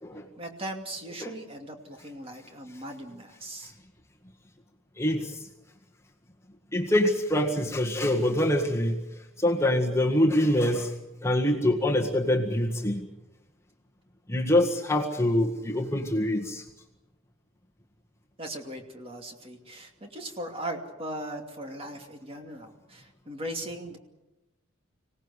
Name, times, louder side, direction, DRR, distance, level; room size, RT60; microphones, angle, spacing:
voice 1, 0.4-3.7 18.4-24.0, right 1 dB, 25° right, 3 dB, 2.6 m, -38 dB
voice 2, 5.0-5.4 6.7-9.0 9.4-10.9 11.2-13.1 14.3-16.6, left 1 dB, 15° left, 0 dB, 1.7 m, -25 dB
25.5 x 18.0 x 8.3 m, 0.99 s
head